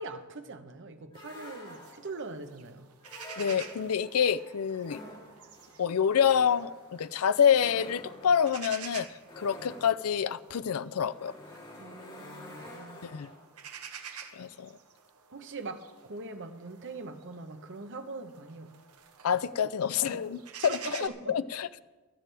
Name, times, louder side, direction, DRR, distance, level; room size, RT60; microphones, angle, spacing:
voice 1, 0.0-2.9 9.6-9.7 11.8-13.2 15.3-18.8 19.3-19.4 20.0-20.2 20.7-21.3, right 3 dB, 60° right, 1.0 m, -42 dB
sound 1, 1.1-2.2 3.0-4.1 4.8-13.5, left 1 dB, 25° left, 3.2 m, -48 dB
sound 2, 1.7-21.1, right 7 dB, 75° right, 1.2 m, -49 dB
voice 2, 3.4-5.0 5.8-9.1 9.4-11.3 13.0-13.3 14.3-14.7 19.2-21.8, left 7 dB, 70° left, 0.5 m, -27 dB
25.5 x 9.0 x 3.4 m
head